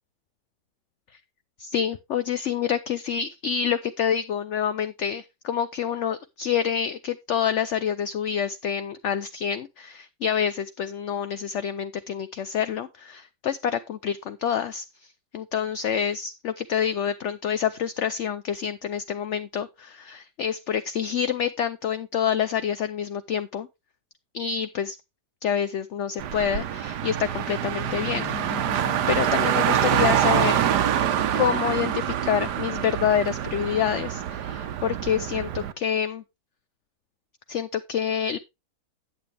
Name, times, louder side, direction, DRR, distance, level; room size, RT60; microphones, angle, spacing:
voice 1, 1.6-14.8 15.3-23.7 24.3-25.0 25.4-28.7 29.1-30.6 31.4-36.2 37.5-38.4, left 8 dB, 60° left, 0.8 m, -27 dB
Car, 26.2-35.7, right 10 dB, 80° right, 1.4 m, -25 dB
sound 1, 27.9-32.5, left 11 dB, 85° left, 1.6 m, -42 dB
9.1 x 8.9 x 3.4 m
omnidirectional pair, 1.8 m